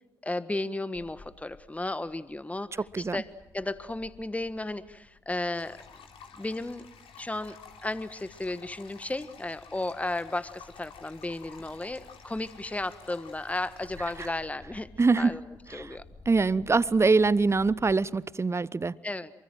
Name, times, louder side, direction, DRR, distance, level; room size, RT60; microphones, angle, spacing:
voice 1, 0.2-3.3 3.5-5.8 6.4-6.8 7.2-14.9 15.2-15.4 15.7-16.0 19.0-19.3, left 2 dB, 15° left, 1.4 m, -34 dB
Bird / Wind, 0.9-17.9, left 3 dB, 30° left, 5.0 m, -56 dB
sound 1, 5.5-14.3, left 6 dB, 55° left, 3.8 m, -51 dB
voice 2, 15.0-15.4 15.7-16.0 16.3-19.0, right 4 dB, 25° right, 0.9 m, -24 dB
28.0 x 23.5 x 7.8 m
figure-of-eight pair, 40°, 11 cm